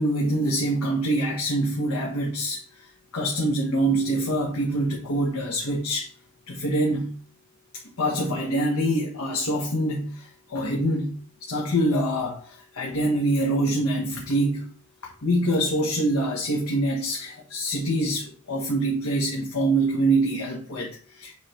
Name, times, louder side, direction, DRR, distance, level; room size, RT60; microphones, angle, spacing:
voice 1, 0.0-6.1 6.5-7.1 8.0-11.1 11.4-14.7 15.2-21.3, right 1 dB, 85° left, 1.3 m, -25 dB
7.5 x 3.3 x 4.4 m
head